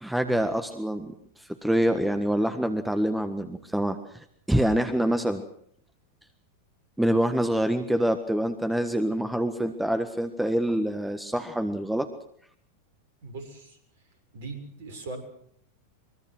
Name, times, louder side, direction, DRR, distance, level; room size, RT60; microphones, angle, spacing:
voice 1, 0.0-5.4 7.0-12.1, right 1 dB, 5° right, 8 dB, 1.6 m, -26 dB
voice 2, 13.2-13.8 14.3-15.2, right 3 dB, 55° right, 7 dB, 6.7 m, -39 dB
24.0 x 23.5 x 6.4 m, 0.67 s
figure-of-eight pair, 90°, 0 cm